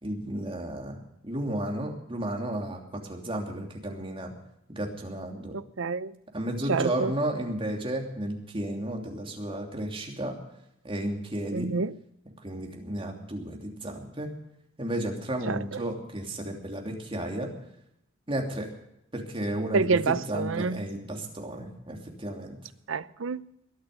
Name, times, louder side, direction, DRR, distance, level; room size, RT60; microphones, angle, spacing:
voice 1, 0.0-4.3 4.7-5.6 6.3-10.4 10.8-11.7 12.4-14.3 14.8-17.5 18.3-18.7 19.1-22.6, right 1 dB, 25° right, 3.0 m, -33 dB
voice 2, 5.5-6.1 6.7-7.1 11.5-11.9 15.5-15.8 19.7-20.9 22.9-23.4, right 4 dB, 70° right, 0.6 m, -28 dB
22.5 x 8.9 x 6.6 m
head